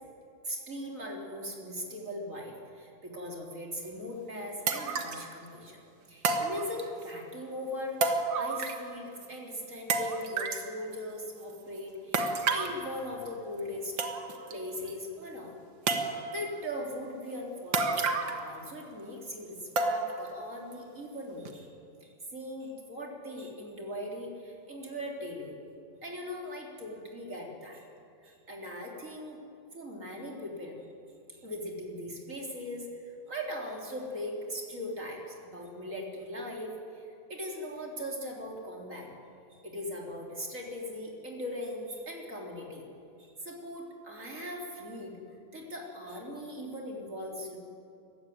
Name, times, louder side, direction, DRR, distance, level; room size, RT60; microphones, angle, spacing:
voice 1, 0.4-5.8 6.1-14.0 14.5-15.5 16.0-21.7 22.0-25.5 26.0-27.8 28.2-29.4 29.7-30.8 31.3-39.1 39.5-42.9 43.2-45.2 45.5-47.6, left 1 dB, 40° right, 0 dB, 3.9 m, -40 dB
sound 1, 3.9-4.0 4.7-5.3 6.2-7.1 8.0-8.9 9.2-9.3 9.9-10.7 12.1-12.8 13.6-13.7 14.0-14.5 14.9-15.0 15.9-16.5 17.7-18.5 18.8-18.9 19.8-20.3 20.7-20.8 21.5-21.6, right 4 dB, 75° right, 2.3 m, -30 dB
24.5 x 15.5 x 9.5 m, 2.6 s
omnidirectional pair, 2.1 m